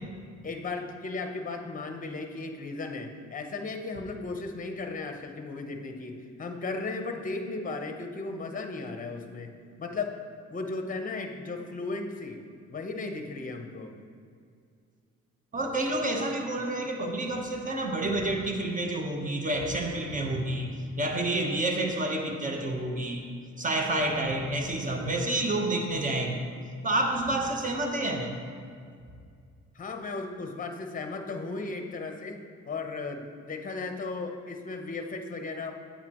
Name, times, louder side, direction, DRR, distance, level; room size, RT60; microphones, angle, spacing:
voice 1, 0.4-9.5 9.8-10.1 10.5-12.4 12.7-13.9 29.7-35.7, left 3 dB, 25° left, 4 dB, 0.9 m, -36 dB
voice 2, 15.5-20.7 21.0-23.2 23.6-26.4 26.8-28.4, right 1 dB, 25° right, 2 dB, 1.1 m, -29 dB
8.5 x 8.2 x 3.0 m, 2.2 s
cardioid pair, 90°, 30 cm